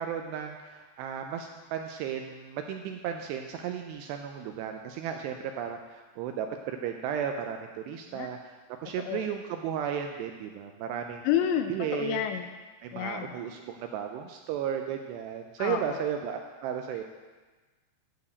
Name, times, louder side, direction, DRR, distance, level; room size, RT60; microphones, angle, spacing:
voice 1, 0.0-8.6 8.8-11.3 11.7-12.2 12.8-17.0, right 8 dB, 85° right, 4 dB, 2.5 m, -34 dB
voice 2, 11.2-12.5 12.9-13.4 15.6-16.1, left 9 dB, 80° left, 7 dB, 2.8 m, -30 dB
11.0 x 5.0 x 8.1 m, 1.3 s
omnidirectional pair, 5.3 m